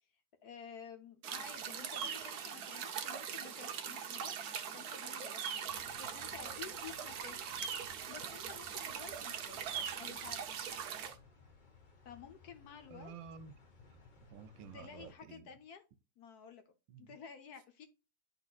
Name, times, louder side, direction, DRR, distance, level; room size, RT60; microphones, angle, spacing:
voice 1, 0.4-4.3 4.7-5.6 6.0-7.4 8.1-9.7 10.0-10.4 12.0-13.1 14.7-15.8 16.2-16.6 17.0-17.9, left 7 dB, 65° left, 1.1 m, -52 dB
sound 1, 1.2-11.1, right 7 dB, 60° right, 1.1 m, -41 dB
sound 2, 5.7-15.1, left 4 dB, 40° left, 0.7 m, -61 dB
voice 2, 12.9-13.6 14.2-15.5 16.9-17.2, right 6 dB, 80° right, 1.4 m, -52 dB
10.5 x 4.0 x 2.4 m
omnidirectional pair, 2.1 m